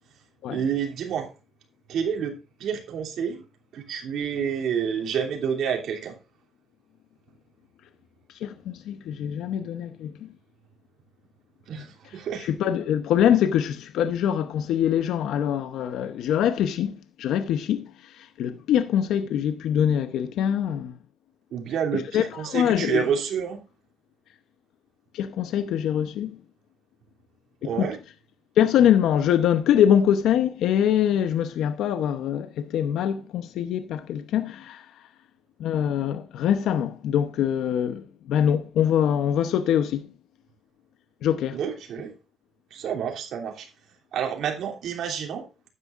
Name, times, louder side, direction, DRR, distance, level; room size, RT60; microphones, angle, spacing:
voice 1, 0.5-1.3 1.9-2.3 2.6-3.4 3.7-6.2 11.7-12.5 21.5-23.6 27.6-28.0 41.5-42.1 42.7-43.7 44.1-45.4, right 7 dB, 75° right, 3.0 m, -29 dB
voice 2, 8.4-10.3 12.4-20.9 21.9-23.0 25.1-26.4 27.6-27.9 28.6-34.9 35.6-40.1 41.2-41.6, left 9 dB, 85° left, 0.9 m, -24 dB
12.5 x 9.8 x 2.5 m
cardioid pair, 100°, 0 cm